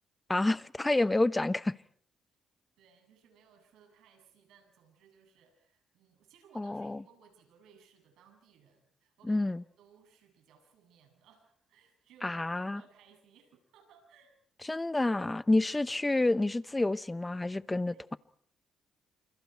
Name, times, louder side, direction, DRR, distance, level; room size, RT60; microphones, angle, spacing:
voice 1, 0.3-1.8 6.6-7.0 9.2-9.6 12.2-12.8 14.6-18.2, left 2 dB, 15° left, 1.0 m, -29 dB
voice 2, 2.8-14.3 15.6-15.8 17.9-18.0, right 6 dB, 85° right, 7.8 m, -62 dB
29.5 x 28.0 x 4.6 m
cardioid pair, 90°, 0 cm